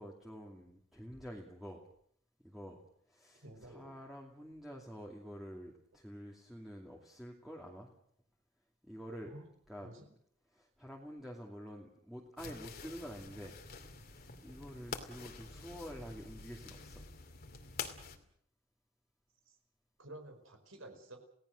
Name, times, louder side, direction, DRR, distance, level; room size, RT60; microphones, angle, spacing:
voice 1, 0.0-1.9 2.4-2.8 3.1-7.9 8.8-9.3 9.7-9.9 10.5-13.6 14.1-17.0, equal, ahead, -2 dB, 2.6 m, -48 dB
voice 2, 3.4-3.9 9.2-9.4 9.8-10.1 19.4-19.6 20.0-21.2, right 1 dB, 80° right, 5 dB, 4.9 m, -51 dB
sound 1, 12.4-18.2, left 5 dB, 50° left, 2.5 m, -47 dB
29.0 x 17.5 x 6.6 m, 0.67 s
head